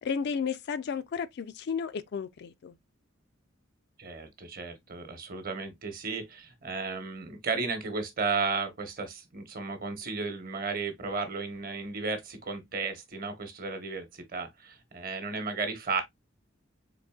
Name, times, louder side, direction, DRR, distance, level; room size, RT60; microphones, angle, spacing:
voice 1, 0.0-2.7, left 6 dB, 60° left, 0.4 m, -33 dB
voice 2, 4.0-16.0, right 4 dB, 50° right, 1.0 m, -34 dB
3.8 x 3.5 x 2.3 m
head